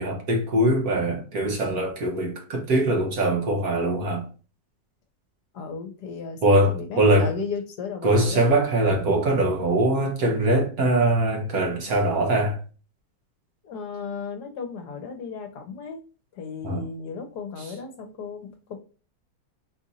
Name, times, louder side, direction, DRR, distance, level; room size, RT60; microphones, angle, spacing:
voice 1, 0.0-4.3 6.4-7.3 8.0-12.6 16.6-16.8, right 1 dB, 60° right, 1.5 m, -22 dB
voice 2, 5.5-8.5 13.6-16.0 16.3-18.8, left 5 dB, 65° left, 1.4 m, -35 dB
4.4 x 2.6 x 4.0 m
omnidirectional pair, 1.9 m